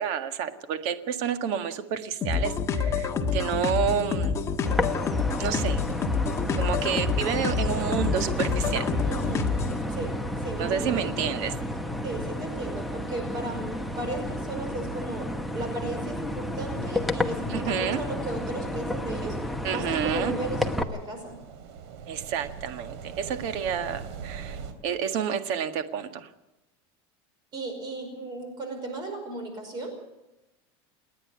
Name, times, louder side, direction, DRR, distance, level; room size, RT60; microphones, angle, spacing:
voice 1, 0.0-4.4 5.4-5.8 6.6-8.8 10.6-11.5 17.5-18.0 19.6-20.3 22.1-26.3, right 8 dB, 55° right, 9 dB, 1.8 m, -29 dB
sound 1, 2.2-9.8, left 5 dB, 20° left, 1.5 m, -27 dB
sound 2, 4.7-20.8, left 1 dB, ahead, 1.0 m, -32 dB
voice 2, 9.0-9.5 9.9-11.4 12.0-19.4 19.7-21.4 27.5-29.9, right 2 dB, 30° right, 5 dB, 5.3 m, -35 dB
sound 3, 19.9-24.7, right 7 dB, 75° right, 3.1 m, -42 dB
29.0 x 9.9 x 9.5 m, 0.99 s
supercardioid pair, 160°, 14 cm